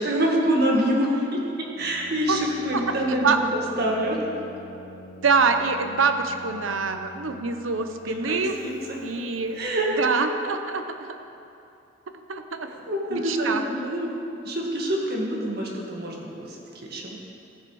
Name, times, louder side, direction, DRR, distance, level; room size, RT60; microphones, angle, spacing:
voice 1, 0.0-3.4 3.8-4.2 8.0-9.0 9.5-10.2 12.6-14.1 14.4-17.2, right 1 dB, 55° right, -1 dB, 1.7 m, -26 dB
Keyboard (musical), 1.8-9.9, equal, 90° left, 1.0 m, -46 dB
voice 2, 5.2-8.6 9.0-9.6 10.0-10.8 12.3-12.7 13.1-13.6, right 4 dB, 80° right, 7 dB, 0.7 m, -24 dB
14.5 x 6.9 x 4.7 m, 2.7 s
head